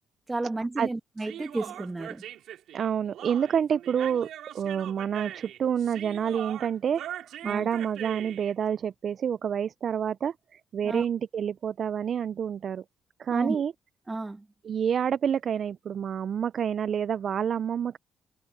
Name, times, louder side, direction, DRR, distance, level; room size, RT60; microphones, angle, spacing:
voice 1, 0.3-2.2 7.4-7.7 10.8-11.0 13.3-13.6 14.1-14.5, right 2 dB, 20° right, 2.0 m, -32 dB
Human voice, 1.2-8.5, right 11 dB, 80° right, 3.8 m, -41 dB
voice 2, 2.7-4.3 4.5-12.8 13.2-13.7 14.6-18.0, right 8 dB, 55° right, 0.3 m, -28 dB
cardioid pair, 90°, 0 cm